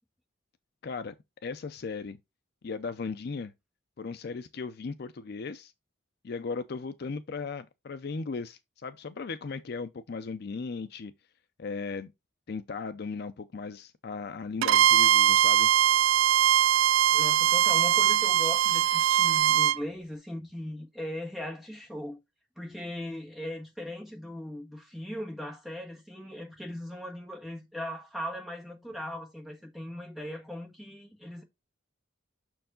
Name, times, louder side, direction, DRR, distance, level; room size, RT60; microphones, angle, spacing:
voice 1, 0.8-1.1 1.4-2.2 2.6-3.5 4.0-5.7 6.2-11.1 11.6-12.1 12.5-15.7, left 4 dB, 50° left, 0.4 m, -37 dB
Bowed string instrument, 14.6-19.8, right 10 dB, 75° right, 0.3 m, -22 dB
voice 2, 17.1-22.2 22.6-31.4, left 1 dB, ahead, 1.4 m, -39 dB
6.3 x 4.6 x 3.7 m
head